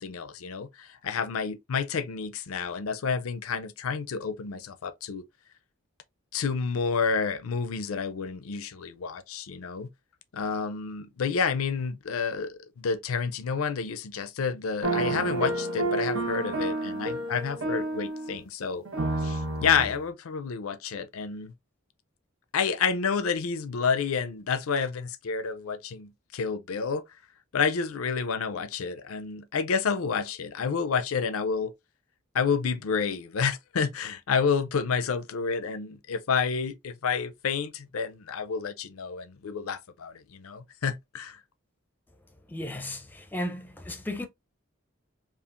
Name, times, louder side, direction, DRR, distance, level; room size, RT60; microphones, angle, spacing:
voice 1, 0.0-5.2 6.3-9.9 10.3-18.8 19.2-21.5 22.5-27.0 27.5-31.7 32.3-41.4, left 5 dB, 90° left, 0.5 m, -29 dB
sound 1, 14.8-18.4 18.8-20.0, right 2 dB, 80° right, 1.1 m, -30 dB
voice 2, 42.5-44.3, left 1 dB, 10° left, 0.5 m, -35 dB
5.5 x 2.4 x 2.4 m
head